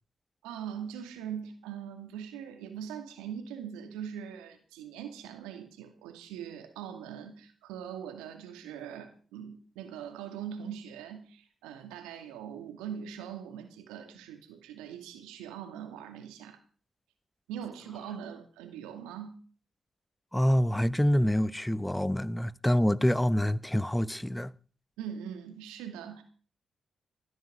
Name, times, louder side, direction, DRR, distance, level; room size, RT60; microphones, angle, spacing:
voice 1, 0.4-16.6 17.5-19.4 25.0-26.2, right 8 dB, 90° right, 2.3 m, -41 dB
voice 2, 20.3-24.5, equal, 10° left, 0.9 m, -26 dB
16.5 x 12.0 x 5.3 m
hypercardioid pair, 40°, 0 cm